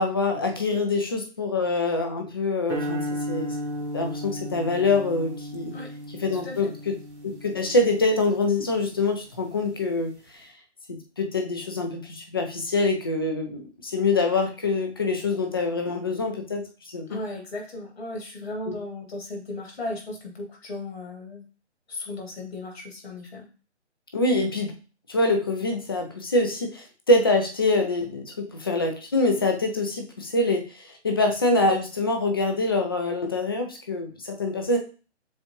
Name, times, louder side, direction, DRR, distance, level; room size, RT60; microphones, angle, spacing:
voice 1, 0.0-3.5 3.9-5.7 6.2-6.9 7.2-10.5 10.9-17.1 18.7-18.8 24.1-24.7 25.1-30.6 31.0-34.8, left 2 dB, 20° left, 4 dB, 0.4 m, -25 dB
sound 1, 2.7-9.0, equal, 70° right, 1.7 m, -35 dB
voice 2, 6.3-6.7 17.1-21.4 21.9-23.5, left 2 dB, 60° left, 0 dB, 2.1 m, -36 dB
7.0 x 2.4 x 3.0 m, 0.36 s
figure-of-eight pair, 140°, 36 cm